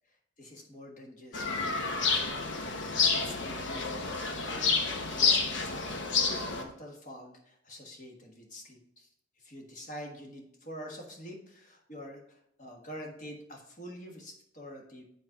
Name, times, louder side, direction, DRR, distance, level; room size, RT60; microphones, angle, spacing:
voice 1, 0.1-2.4 2.7-4.8 5.1-9.1 9.4-15.0, equal, 40° left, 0 dB, 1.5 m, -47 dB
sound 1, 1.3-6.6, left 4 dB, 85° left, 1.0 m, -29 dB
7.7 x 4.2 x 5.0 m, 0.73 s
head